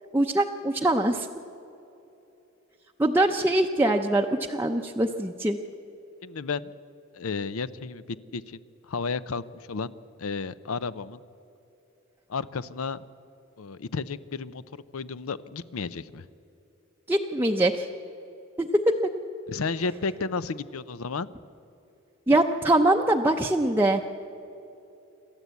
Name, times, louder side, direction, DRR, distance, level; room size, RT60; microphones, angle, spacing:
voice 1, 0.1-1.3 3.0-5.6 17.1-17.9 18.6-19.1 22.3-24.0, right 1 dB, 10° right, 1 dB, 0.6 m, -23 dB
voice 2, 6.2-6.7 7.1-8.6 8.9-9.9 10.2-11.2 12.3-13.0 13.6-16.3 19.5-21.3, left 4 dB, 90° left, 15 dB, 0.6 m, -32 dB
27.5 x 13.0 x 8.3 m, 2.9 s
head